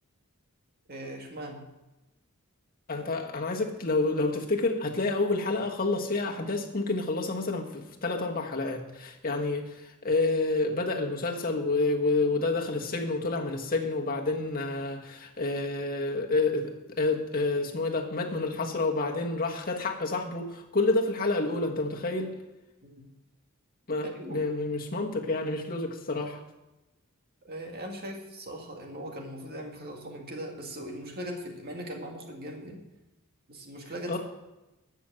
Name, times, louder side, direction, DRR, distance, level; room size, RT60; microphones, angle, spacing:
voice 1, 0.9-1.7 22.8-23.1 24.0-24.4 27.4-32.8 33.5-34.2, equal, 45° right, 1 dB, 2.0 m, -39 dB
voice 2, 2.9-22.3 23.9-26.4 34.1-34.2, left 3 dB, 45° left, 1 dB, 1.4 m, -29 dB
12.5 x 6.1 x 7.6 m, 0.99 s
head